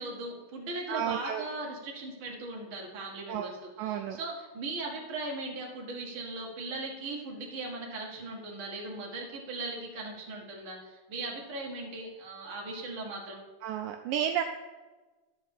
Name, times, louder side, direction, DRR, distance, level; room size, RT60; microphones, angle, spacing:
voice 1, 0.0-13.4, right 2 dB, 40° right, -1 dB, 2.2 m, -38 dB
voice 2, 0.9-1.4 3.3-3.5 3.8-4.2 13.6-14.4, right 9 dB, 80° right, 5 dB, 2.1 m, -31 dB
12.0 x 4.7 x 7.2 m, 1.2 s
omnidirectional pair, 4.0 m